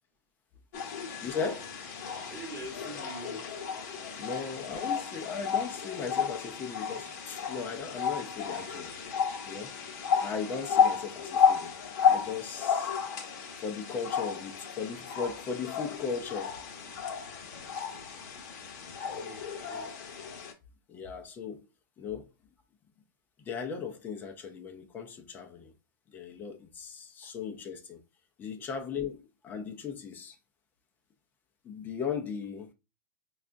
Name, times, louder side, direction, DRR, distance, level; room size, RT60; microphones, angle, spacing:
sound 1, 0.7-20.5, left 7 dB, 50° left, 0.8 m, -32 dB
voice 1, 1.2-1.7 4.2-8.9 9.4-9.8 10.2-11.7 12.0-12.9 13.6-16.6 20.9-21.7 22.0-22.3 23.4-25.7 26.1-28.0 28.4-30.4 31.6-32.7, left 6 dB, 15° left, 0.5 m, -37 dB
voice 2, 2.3-3.4 17.8-18.0 19.0-19.9 27.2-27.3 28.6-28.7, right 2 dB, 15° right, 1.0 m, -45 dB
4.7 x 2.3 x 2.5 m
hypercardioid pair, 155°, 12 cm